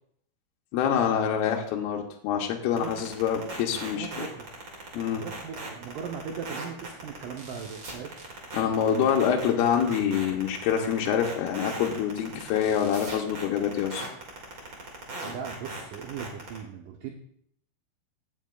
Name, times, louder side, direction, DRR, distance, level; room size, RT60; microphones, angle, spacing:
voice 1, 0.7-4.3 4.9-5.3 8.5-14.1, left 8 dB, 80° left, 1 dB, 2.7 m, -26 dB
sound 1, 2.8-16.6, right 3 dB, 40° right, 2.1 m, -38 dB
voice 2, 3.9-4.5 5.2-8.2 14.8-17.1, right 7 dB, 75° right, 2 dB, 2.0 m, -39 dB
16.5 x 7.4 x 2.3 m, 0.68 s
omnidirectional pair, 4.6 m